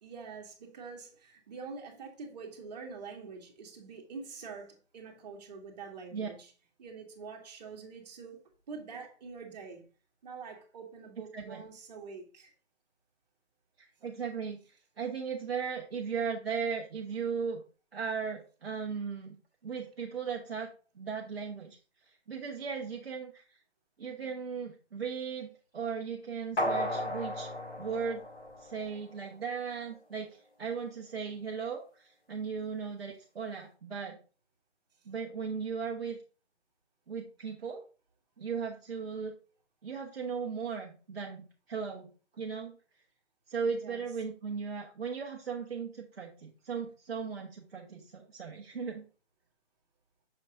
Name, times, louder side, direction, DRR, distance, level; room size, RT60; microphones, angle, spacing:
voice 1, 0.0-6.5 6.8-9.9 10.2-12.5 43.8-44.1, right 5 dB, 35° right, 1.8 m, -45 dB
voice 2, 13.8-17.6 17.9-19.3 19.6-20.7 20.9-21.8 22.3-23.6 24.0-27.5 27.8-28.2 28.6-34.2 35.1-36.2 37.1-37.8 38.4-39.3 39.8-42.7 43.5-49.0, right 6 dB, 55° right, 1.2 m, -37 dB
sound 1, 26.6-29.1 29.5-29.6, equal, 70° left, 3.3 m, -34 dB
6.5 x 6.2 x 2.5 m
figure-of-eight pair, 145°, 36 cm